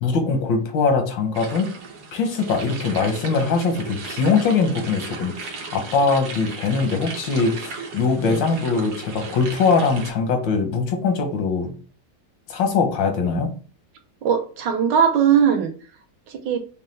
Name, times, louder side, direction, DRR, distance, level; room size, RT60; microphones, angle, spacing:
voice 1, 0.0-1.7 2.1-11.7 12.5-13.5, left 4 dB, 85° left, 1.6 m, -22 dB
sound 1, 1.3-10.1, right 4 dB, 55° right, 1.1 m, -36 dB
voice 2, 8.2-8.6 14.2-15.7 16.3-16.6, right 8 dB, 75° right, 1.4 m, -20 dB
5.4 x 2.2 x 3.1 m
omnidirectional pair, 2.0 m